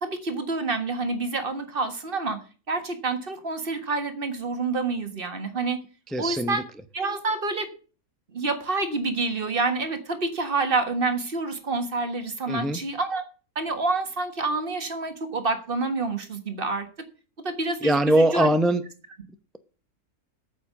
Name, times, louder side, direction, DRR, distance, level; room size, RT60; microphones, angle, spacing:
voice 1, 0.0-2.4 2.7-5.8 6.2-6.6 6.9-7.7 8.3-13.2 13.5-16.9 17.4-18.5, right 3 dB, 40° right, 1.7 m, -28 dB
voice 2, 6.1-6.6 12.5-12.8 17.8-18.8, right 1 dB, ahead, 0.4 m, -21 dB
9.3 x 7.5 x 8.2 m
omnidirectional pair, 1.6 m